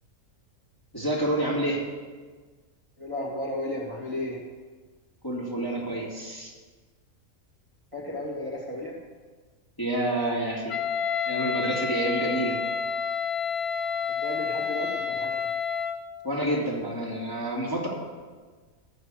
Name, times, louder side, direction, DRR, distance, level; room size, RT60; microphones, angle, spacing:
voice 1, 0.9-1.8 5.2-6.5 9.8-10.8 11.3-12.6 16.2-17.9, right 1 dB, 15° left, -5 dB, 2.7 m, -28 dB
voice 2, 3.0-4.4 7.9-8.9 14.2-15.4, left 1 dB, 20° right, -4 dB, 2.5 m, -33 dB
Wind instrument woodwind instrument, 10.7-16.0, left 6 dB, 55° left, 0.9 m, -29 dB
13.5 x 8.8 x 6.4 m, 1.4 s
omnidirectional pair, 1.5 m